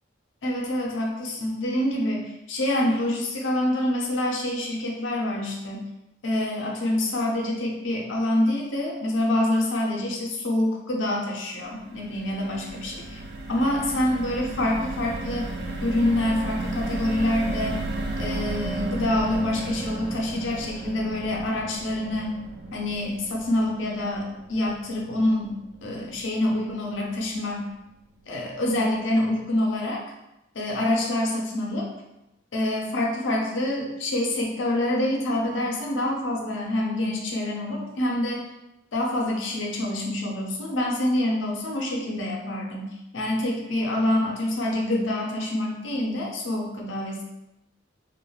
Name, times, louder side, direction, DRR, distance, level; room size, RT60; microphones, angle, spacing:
voice 1, 0.4-5.9 6.2-13.2 13.5-15.5 15.8-17.8 18.2-22.4 22.7-27.7 28.3-30.0 30.5-31.9 32.5-38.5 38.9-47.2, left 1 dB, 70° left, -1 dB, 0.6 m, -26 dB
sound 1, 11.6-27.9 28.3-28.5 28.7-28.9, right 2 dB, 55° right, 0.4 m, -34 dB
2.4 x 2.2 x 3.2 m, 0.90 s
head